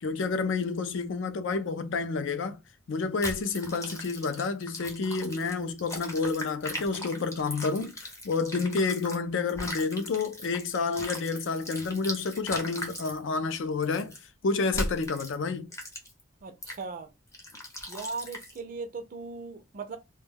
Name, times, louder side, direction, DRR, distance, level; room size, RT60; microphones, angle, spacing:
voice 1, 0.0-2.6 2.9-14.1 14.4-15.7, left 4 dB, 65° left, 0.4 m, -29 dB
sound 1, 3.2-9.2 9.5-13.2 13.8-14.2 14.7-15.3 15.7-16.2 16.6-16.8 17.3-18.6, left 1 dB, 15° left, 0.6 m, -39 dB
voice 2, 16.4-17.1 17.9-20.0, right 4 dB, 40° right, 0.4 m, -38 dB
2.2 x 2.2 x 3.3 m
head